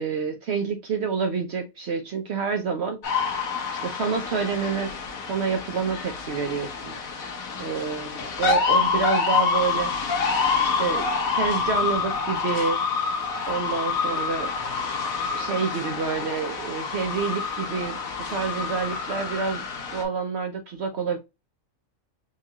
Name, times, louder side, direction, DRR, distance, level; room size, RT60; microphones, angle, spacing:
voice 1, 0.0-3.0 3.7-4.9 5.3-7.0 7.6-9.9 10.6-11.1 11.4-12.8 13.5-14.5 15.3-18.0 18.3-19.6 19.9-21.2, right 5 dB, 60° right, 0.8 m, -28 dB
sound 1, 3.0-20.0, left 5 dB, 85° left, 1.3 m, -27 dB
4.6 x 2.4 x 2.7 m
omnidirectional pair, 1.4 m